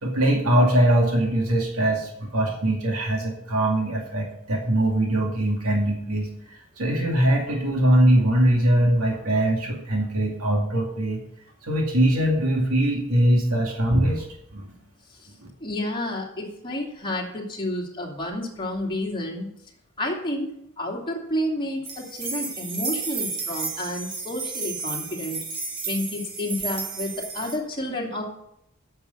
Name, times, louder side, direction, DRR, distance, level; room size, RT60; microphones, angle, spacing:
voice 1, 0.0-6.3 6.8-11.2 11.6-14.2 14.5-14.7, right 1 dB, 85° right, 0 dB, 2.3 m, -21 dB
voice 2, 15.6-19.5 20.0-20.5 20.8-25.4 25.9-28.2, left 1 dB, 20° left, -2 dB, 2.6 m, -30 dB
sound 1, 21.8-27.6, right 4 dB, 50° right, 2.0 m, -32 dB
9.5 x 6.9 x 7.9 m, 0.77 s
head